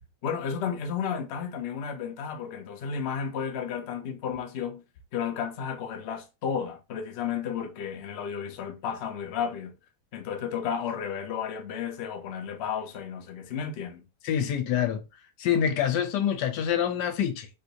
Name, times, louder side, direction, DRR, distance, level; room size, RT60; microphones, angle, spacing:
voice 1, 0.2-4.8 5.1-9.7 10.1-14.0, left 7 dB, 60° left, 0.7 m, -33 dB
voice 2, 14.2-15.0 15.4-17.5, left 9 dB, 85° left, 1.2 m, -26 dB
3.7 x 2.5 x 2.8 m
omnidirectional pair, 1.8 m